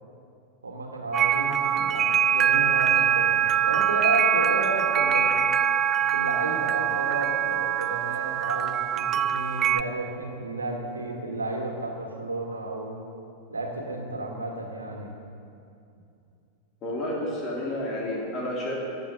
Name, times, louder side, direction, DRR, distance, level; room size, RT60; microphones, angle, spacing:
voice 1, 0.6-5.4 6.1-13.0 13.5-15.1, right 2 dB, 75° right, 1 dB, 2.3 m, -32 dB
sound 1, 1.1-9.8, right 9 dB, 30° right, 0.4 m, -23 dB
sound 2, 6.8-10.4, right 6 dB, 45° right, 1.8 m, -43 dB
voice 2, 16.8-18.7, left 1 dB, 30° left, -3 dB, 3.3 m, -30 dB
14.5 x 9.1 x 8.6 m, 2.6 s
figure-of-eight pair, 90°, 0 cm